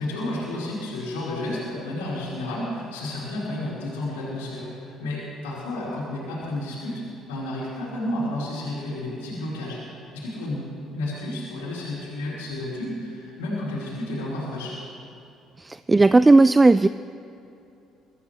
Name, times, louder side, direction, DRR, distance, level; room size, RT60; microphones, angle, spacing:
voice 1, 0.0-7.0 7.3-14.8, left 1 dB, 80° left, -8 dB, 4.1 m, -31 dB
voice 2, 15.6-16.9, right 2 dB, 20° right, 14 dB, 0.3 m, -15 dB
23.0 x 13.5 x 3.2 m, 2.7 s
hypercardioid pair, 50°, 0 cm